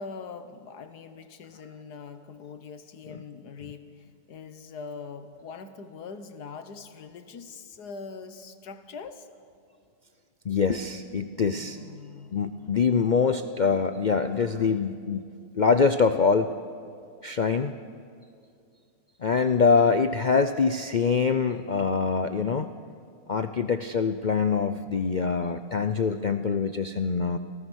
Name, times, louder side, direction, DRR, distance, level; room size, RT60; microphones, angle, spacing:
voice 1, 0.0-9.3 11.3-12.8, left 5 dB, 90° left, 9 dB, 1.8 m, -43 dB
voice 2, 10.4-11.8 12.3-15.2 15.5-16.5 17.2-17.7 19.2-22.7 23.3-27.4, left 5 dB, 65° left, 9 dB, 0.4 m, -24 dB
29.0 x 17.5 x 6.3 m, 2.4 s
omnidirectional pair, 1.7 m